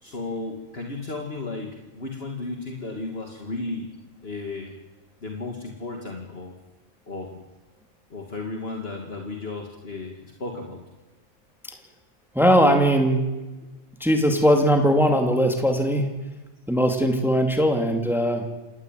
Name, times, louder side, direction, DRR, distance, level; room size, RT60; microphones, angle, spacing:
voice 1, 0.0-3.9 4.2-4.8 5.2-6.5 7.1-7.4 8.1-10.8, left 3 dB, 55° left, 2 dB, 2.7 m, -34 dB
voice 2, 12.3-13.2 14.0-16.1 16.7-18.4, equal, ahead, 4 dB, 2.5 m, -20 dB
29.0 x 14.5 x 9.3 m, 1.1 s
omnidirectional pair, 1.2 m